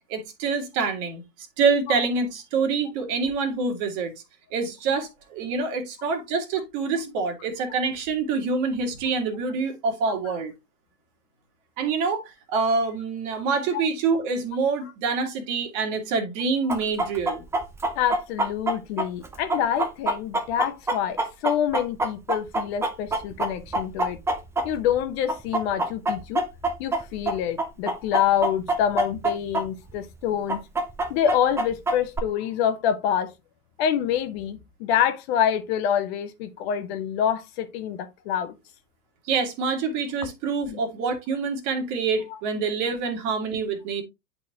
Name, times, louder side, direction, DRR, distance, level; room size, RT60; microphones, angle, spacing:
voice 1, 0.1-1.2 1.6-4.1 4.5-10.5 11.8-17.4 39.3-44.0, right 4 dB, 40° right, 2.1 m, -26 dB
Chicken rooster, 16.7-25.0 25.3-29.6 29.9-30.0 30.5-32.2, right 2 dB, 5° right, 0.6 m, -25 dB
voice 2, 17.9-24.2 24.6-26.4 26.8-30.6 31.1-33.3 33.8-38.5 40.7-40.8 42.3-42.4, left 9 dB, 40° left, 1.1 m, -26 dB
10.5 x 4.2 x 2.9 m
figure-of-eight pair, 95°, 47 cm